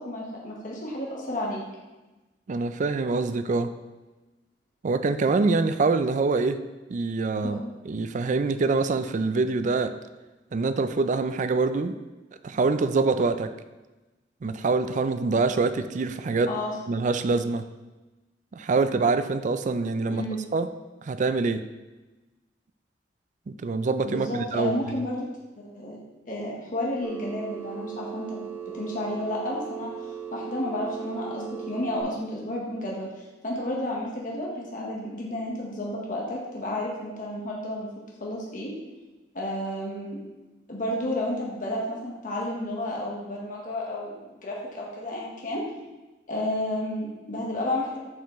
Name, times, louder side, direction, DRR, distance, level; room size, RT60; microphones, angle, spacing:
voice 1, 0.0-1.6 7.4-7.6 16.5-16.7 20.1-20.4 24.0-25.3 25.6-26.0 26.3-28.5 28.7-29.9 30.3-37.9 38.2-38.7 39.3-40.2 40.7-45.6 46.3-48.0, left 1 dB, 50° left, -3 dB, 1.2 m, -31 dB
voice 2, 2.5-3.7 4.8-6.6 6.9-7.6 7.8-9.9 10.5-12.0 12.4-13.5 14.4-16.5 16.9-17.6 18.5-20.2 20.5-20.7 21.0-21.6 23.5-24.7, right 3 dB, 45° right, 11 dB, 0.4 m, -25 dB
Telephone, 27.0-32.0, right 8 dB, 10° right, 1.4 m, -38 dB
7.1 x 5.8 x 3.1 m, 1.1 s
head